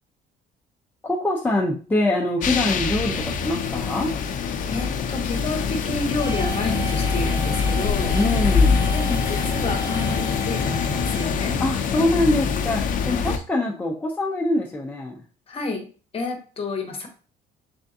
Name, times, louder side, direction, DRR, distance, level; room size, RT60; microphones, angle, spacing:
voice 1, 1.0-4.1 8.1-8.9 11.6-15.2, left 1 dB, 10° left, -1 dB, 0.6 m, -24 dB
sound 1, 2.4-13.4, left 5 dB, 50° left, 0.5 m, -24 dB
voice 2, 4.7-8.2 8.9-11.6 15.5-15.9 16.1-17.1, left 3 dB, 35° left, 4 dB, 1.0 m, -30 dB
sound 2, 6.2-11.2, right 1 dB, 15° right, 1.4 m, -35 dB
3.6 x 3.4 x 2.7 m, 0.37 s
cardioid pair, 110°, 17 cm